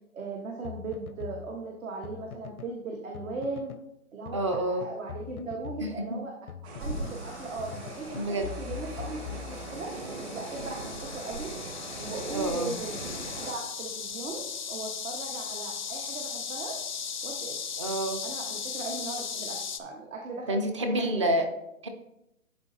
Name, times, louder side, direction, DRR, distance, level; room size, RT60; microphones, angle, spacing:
voice 1, 0.1-3.7 4.1-6.3 6.6-9.9 10.2-11.5 12.0-14.4 14.7-16.7 17.2-17.5 18.2-21.1 21.4-21.5, right 3 dB, 65° right, 0 dB, 1.4 m, -38 dB
sound 1, 0.6-2.8 3.1-3.9 4.2-7.2 7.6-10.0, left 8 dB, 90° left, 0.6 m, -43 dB
voice 2, 4.3-4.9 5.8-6.2 8.1-8.5 12.3-12.7 17.8-18.2 20.5-21.5 21.8-21.9, right 1 dB, 20° right, 6 dB, 0.5 m, -28 dB
sound 2, 6.6-13.5, right 2 dB, 45° right, 1.9 m, -39 dB
sound 3, 6.8-19.8, left 6 dB, 35° left, 0.4 m, -38 dB
11.0 x 4.2 x 2.7 m, 0.84 s
hypercardioid pair, 145°, 43 cm